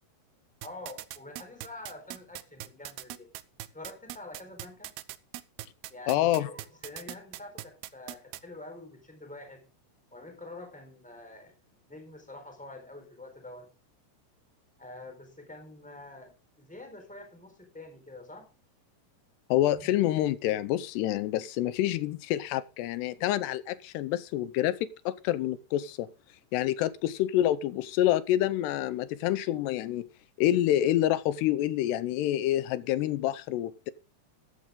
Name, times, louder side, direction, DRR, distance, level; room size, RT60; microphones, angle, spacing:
voice 1, 0.6-3.3 3.7-4.9 5.9-9.6 10.1-13.7 14.8-18.5 19.7-19.9, left 2 dB, ahead, 3.8 m, -46 dB
sound 1, 0.6-8.4, right 16 dB, 75° right, 2.6 m, -40 dB
voice 2, 6.1-6.5 19.5-26.1 26.5-30.1 30.4-33.9, left 13 dB, 85° left, 2.9 m, -27 dB
15.0 x 12.0 x 3.8 m
omnidirectional pair, 4.7 m